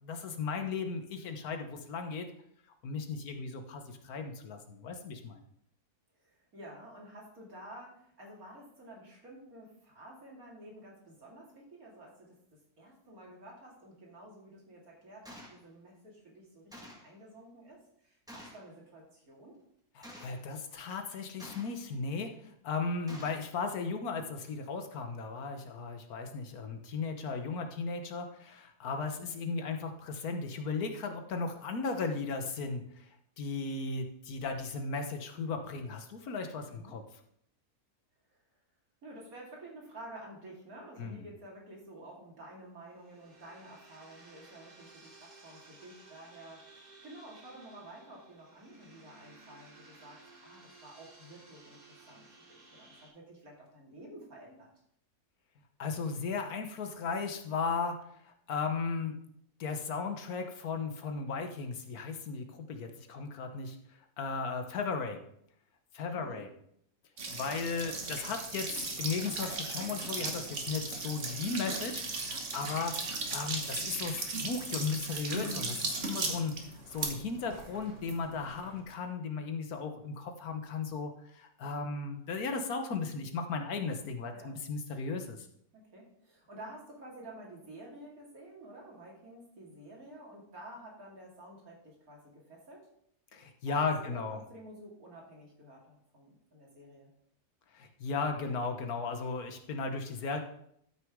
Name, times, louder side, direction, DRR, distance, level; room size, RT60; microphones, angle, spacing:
voice 1, 0.0-2.3 2.8-5.4 20.0-33.1 33.4-37.0 41.0-41.2 55.8-58.0 58.2-59.1 59.6-63.8 64.2-65.2 65.9-66.5 67.3-72.9 73.3-76.6 76.9-85.5 93.3-94.4 97.7-100.4, left 4 dB, 75° left, 6 dB, 1.5 m, -36 dB
voice 2, 6.2-19.6 36.7-37.0 39.0-54.7 66.1-66.4 84.3-84.6 85.7-92.9 93.7-97.1, right 1 dB, 70° right, -2 dB, 2.9 m, -51 dB
Gunshot gunfire, 15.3-15.6 16.7-17.1 18.3-18.7 20.0-20.4 21.4-21.9 23.1-23.5, equal, 5° right, 1.6 m, -49 dB
sound 1, 42.8-53.1, right 3 dB, 30° right, 2.7 m, -57 dB
sound 2, 67.2-78.8, right 3 dB, 50° right, 1.5 m, -37 dB
13.0 x 6.1 x 3.6 m, 0.70 s
omnidirectional pair, 1.6 m